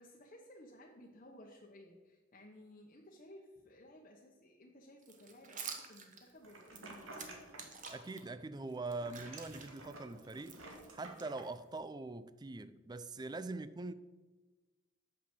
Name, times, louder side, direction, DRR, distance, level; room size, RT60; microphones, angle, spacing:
voice 1, 0.0-7.2 13.1-13.4, left 1 dB, 40° left, 1.1 m, -57 dB
sound 1, 5.0-8.2 8.7-11.8, right 5 dB, 40° right, 1.2 m, -50 dB
sound 2, 6.4-7.8 8.1-8.7 8.9-11.4, right 2 dB, 85° right, 2.0 m, -52 dB
voice 2, 7.9-10.6 10.9-13.9, right 3 dB, 20° right, 0.4 m, -43 dB
8.7 x 6.0 x 7.5 m
head